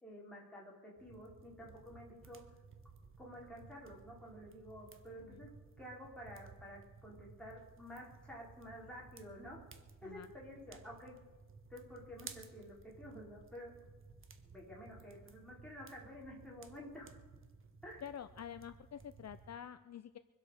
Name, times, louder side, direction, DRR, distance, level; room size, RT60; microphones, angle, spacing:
voice 1, 0.0-2.4 3.2-5.5 5.8-9.6 10.0-11.2 11.7-13.7 14.4-17.1 17.8-18.0, equal, 5° left, -4 dB, 4.7 m, -51 dB
sound 1, 1.0-19.6, right 5 dB, 40° right, 1.1 m, -57 dB
voice 2, 18.0-20.2, left 9 dB, 55° left, 12 dB, 0.6 m, -48 dB
24.0 x 8.2 x 6.5 m, 1.3 s
wide cardioid pair, 150°, 32 cm